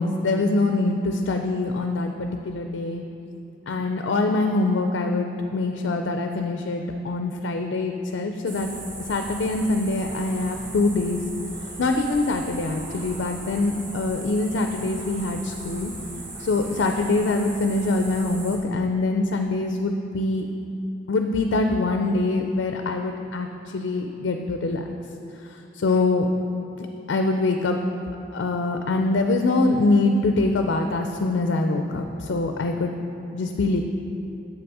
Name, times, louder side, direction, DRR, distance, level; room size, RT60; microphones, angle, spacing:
voice 1, 0.0-3.0 3.7-8.7 9.1-11.2 11.6-15.9 16.4-20.5 21.1-24.8 25.4-26.3 27.1-27.8 28.3-32.9 33.3-33.8, left 2 dB, 70° left, 5 dB, 0.4 m, -24 dB
sound 1, 8.5-18.6, right 2 dB, 65° right, 1.6 m, -38 dB
7.7 x 6.1 x 4.7 m, 3.0 s
head